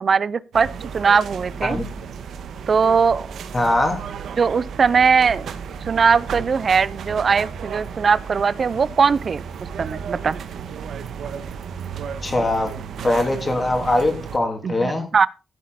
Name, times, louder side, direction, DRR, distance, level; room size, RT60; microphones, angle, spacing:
voice 1, 0.0-0.7 0.9-1.8 2.7-3.3 4.4-5.5 5.9-9.4 9.8-10.4 14.6-15.3, right 5 dB, 40° right, 0.6 m, -19 dB
sound 1, 0.5-14.4, right 6 dB, 85° right, 1.5 m, -34 dB
voice 2, 3.5-4.0 12.2-12.7 13.0-15.0, left 2 dB, 20° left, 3.3 m, -21 dB
15.5 x 8.2 x 4.3 m
wide cardioid pair, 160°, 0 cm